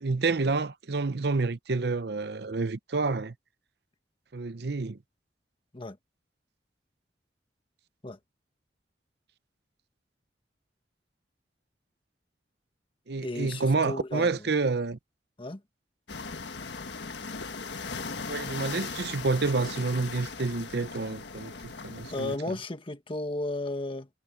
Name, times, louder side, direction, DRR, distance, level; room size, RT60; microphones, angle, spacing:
voice 1, 0.0-3.3 4.3-5.0 13.1-15.0 18.3-22.5, right 3 dB, 65° right, 0.8 m, -29 dB
voice 2, 13.2-14.4 15.4-15.6 22.1-24.1, left 2 dB, 30° left, 1.6 m, -34 dB
sound 1, 16.1-22.4, left 4 dB, 80° left, 1.5 m, -38 dB
head